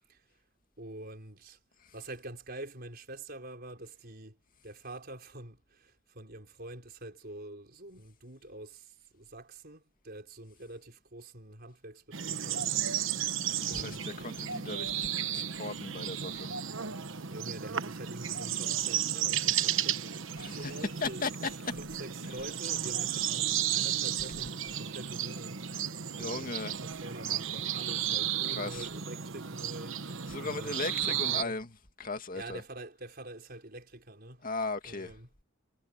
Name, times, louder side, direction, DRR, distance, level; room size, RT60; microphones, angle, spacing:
voice 1, 0.8-1.6 1.9-4.4 4.6-12.7 13.7-14.1 17.3-21.3 21.8-26.6 26.8-31.6 32.3-34.5 34.8-35.3, right 1 dB, 50° right, 5.3 m, -46 dB
sound 1, 12.1-31.4, right 9 dB, 70° right, 1.1 m, -33 dB
voice 2, 13.4-16.5 20.4-20.7 21.0-21.3 26.1-26.7 28.5-28.9 30.3-31.7 32.0-32.6 34.4-35.1, left 3 dB, 40° left, 2.4 m, -37 dB
head